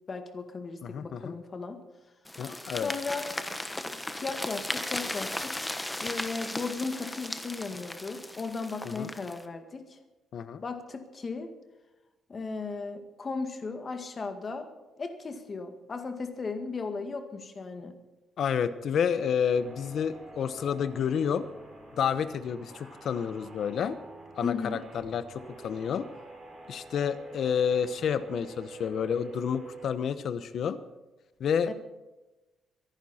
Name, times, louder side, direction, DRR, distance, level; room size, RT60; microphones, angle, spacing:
voice 1, 0.1-1.8 2.8-3.3 4.2-5.5 6.0-10.0 10.6-11.5 12.3-14.7 15.0-17.9 24.4-24.8 31.7-31.8, left 4 dB, 30° left, 6 dB, 1.9 m, -36 dB
voice 2, 0.8-1.3 2.4-2.9 8.8-9.1 10.3-10.6 18.4-21.4 22.0-24.0 24.4-26.1 26.7-30.8 31.4-31.7, left 7 dB, 55° left, 12 dB, 0.9 m, -29 dB
sound 1, 2.3-9.4, left 1 dB, 10° left, 1.2 m, -36 dB
sound 2, 19.5-29.9, right 3 dB, 30° right, 5.0 m, -47 dB
24.0 x 11.5 x 4.3 m, 1.1 s
cardioid pair, 145°, 0 cm